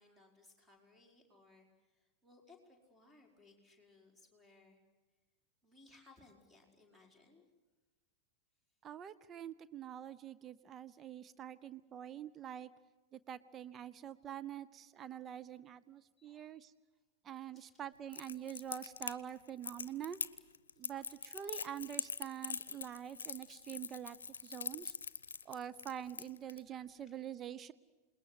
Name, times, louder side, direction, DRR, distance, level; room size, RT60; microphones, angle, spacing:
voice 1, 0.0-4.8 5.6-7.4 16.2-16.5 17.5-17.8 20.7-20.9 27.0-27.1, left 3 dB, 5° right, 2 dB, 5.0 m, -64 dB
voice 2, 8.8-12.7 13.1-16.7 17.2-20.2 20.8-24.2 24.4-24.9 25.4-27.7, right 10 dB, 25° right, 14 dB, 0.8 m, -46 dB
Crackle, 18.1-26.6, left 5 dB, 70° left, 0.8 m, -43 dB
27.5 x 21.0 x 7.8 m, 1.2 s
figure-of-eight pair, 90°, 0 cm